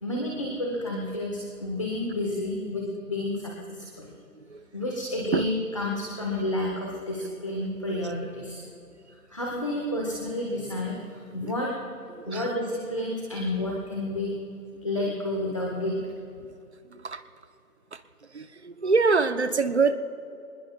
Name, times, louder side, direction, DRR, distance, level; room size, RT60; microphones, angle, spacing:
voice 1, 0.0-4.1 4.7-8.6 9.3-11.7 12.2-14.3 14.8-16.0, left 1 dB, 20° left, -2 dB, 1.1 m, -30 dB
voice 2, 12.1-12.5 16.4-16.5 16.9-17.2 17.9-18.0 18.3-19.9, right 4 dB, 45° right, 10 dB, 0.8 m, -25 dB
27.0 x 20.0 x 2.2 m, 2.6 s
figure-of-eight pair, 175°, 47 cm